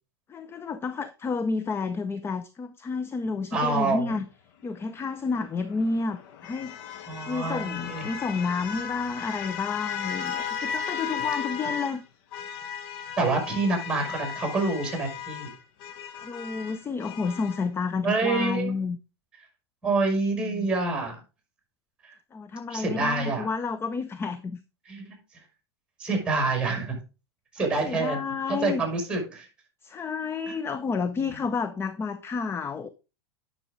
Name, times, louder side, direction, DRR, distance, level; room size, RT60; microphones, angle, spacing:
voice 1, 0.3-4.3 4.6-12.0 16.2-19.0 20.2-20.7 22.3-24.6 27.8-28.8 29.8-32.9, left 4 dB, 15° left, 0.6 m, -30 dB
voice 2, 3.5-4.1 7.1-8.1 13.2-15.5 18.0-18.7 19.8-21.2 22.0-22.1 22.7-23.5 24.9-25.1 26.0-27.0 27.5-28.2 28.5-29.5 30.5-30.6 31.3-31.4, right 3 dB, 5° right, 5.7 m, -27 dB
sound 1, 5.4-12.0 12.3-17.7, left 7 dB, 55° left, 1.3 m, -36 dB
10.5 x 6.3 x 3.7 m
hypercardioid pair, 105°, 14 cm